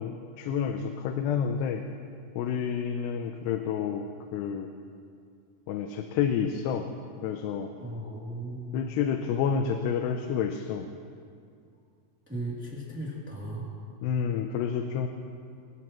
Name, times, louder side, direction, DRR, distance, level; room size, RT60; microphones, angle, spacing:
voice 1, 0.0-1.8 2.4-4.7 5.7-6.9 7.2-7.7 8.7-10.9 14.0-15.1, left 7 dB, 85° left, 5 dB, 2.8 m, -29 dB
voice 2, 7.8-8.9 12.3-13.7, right 1 dB, 5° right, -5 dB, 1.9 m, -36 dB
24.5 x 13.5 x 3.1 m, 2.3 s
omnidirectional pair, 4.7 m